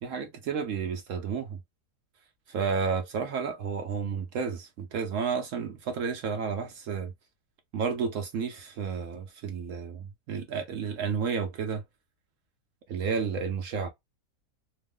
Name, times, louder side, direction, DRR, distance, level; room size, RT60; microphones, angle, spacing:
voice 1, 0.0-1.6 2.5-7.1 7.7-11.8 12.9-13.9, right 6 dB, 70° right, 0.7 m, -31 dB
3.0 x 2.0 x 3.4 m
omnidirectional pair, 1.8 m